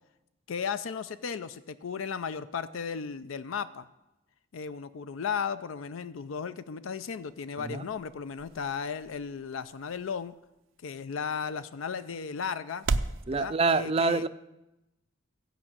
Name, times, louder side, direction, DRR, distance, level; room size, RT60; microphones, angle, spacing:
voice 1, 0.5-3.9 4.5-10.3 10.8-12.9 13.3-14.2, left 6 dB, 85° left, 13 dB, 0.5 m, -35 dB
sound 1, 7.0-13.2, right 3 dB, 80° right, 0.6 m, -38 dB
voice 2, 13.3-14.3, right 4 dB, 30° right, 13 dB, 0.4 m, -26 dB
15.0 x 5.3 x 8.6 m, 0.95 s
head